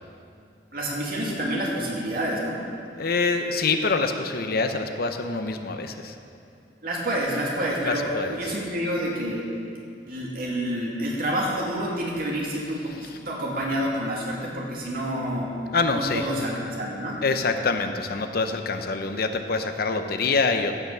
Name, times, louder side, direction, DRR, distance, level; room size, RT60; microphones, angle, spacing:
voice 1, 0.7-2.6 6.8-9.4 10.1-15.5 15.9-17.2, right 1 dB, 55° right, -3 dB, 2.4 m, -28 dB
voice 2, 3.0-6.1 7.9-8.6 12.9-13.2 14.8-15.0 15.7-16.3 17.2-20.8, left 4 dB, 60° left, 7 dB, 0.8 m, -26 dB
15.0 x 5.9 x 6.7 m, 2.5 s
head